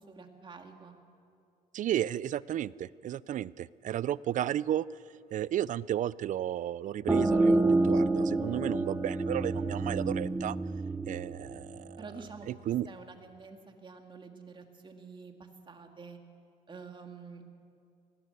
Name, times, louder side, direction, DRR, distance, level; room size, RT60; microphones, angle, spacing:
voice 1, 0.1-0.9 12.0-12.5 12.9-16.2 16.7-17.4, right 4 dB, 30° right, 4 dB, 2.2 m, -48 dB
voice 2, 1.7-4.9 5.3-10.6 11.1-12.0 12.5-12.9, right 11 dB, 50° right, 21 dB, 0.4 m, -33 dB
sound 1, 7.1-12.5, right 2 dB, 10° right, 0.8 m, -28 dB
19.0 x 17.0 x 8.2 m, 2.5 s
cardioid pair, 110°, 17 cm